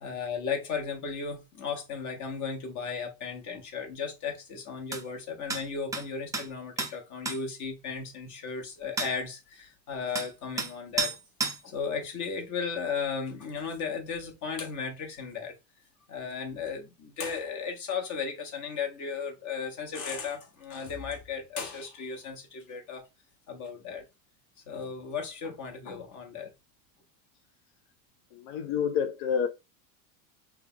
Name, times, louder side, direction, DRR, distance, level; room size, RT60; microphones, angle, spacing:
voice 1, 0.0-11.2 11.6-15.5 16.1-23.0 23.5-24.0 24.7-26.5, left 5 dB, 45° left, 1.2 m, -35 dB
sound 1, 4.9-5.0 5.5-5.6 5.9-6.1 6.3-6.5 6.8-6.9 7.3-7.4 9.0-9.1 10.2-10.3 10.6-10.7 11.0-11.2 11.4-11.6, right 4 dB, 10° right, 0.4 m, -30 dB
voice 2, 28.3-29.5, left 7 dB, 70° left, 0.7 m, -28 dB
3.4 x 2.3 x 3.5 m
supercardioid pair, 120°, 42 cm